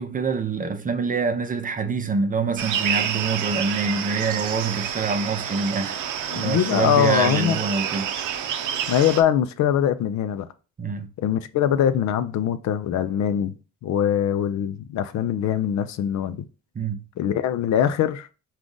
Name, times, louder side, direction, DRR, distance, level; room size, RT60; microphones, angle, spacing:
voice 1, 0.0-6.0 6.3-8.1 10.8-11.1 16.8-17.0, right 4 dB, 25° right, 0.6 m, -25 dB
sound 1, 2.6-9.2, right 9 dB, 80° right, 0.6 m, -28 dB
voice 2, 6.3-7.6 8.9-10.5 11.2-13.5 13.8-16.5 17.2-18.3, left 9 dB, 65° left, 0.5 m, -22 dB
4.9 x 2.4 x 3.8 m
cardioid pair, 90°, 30 cm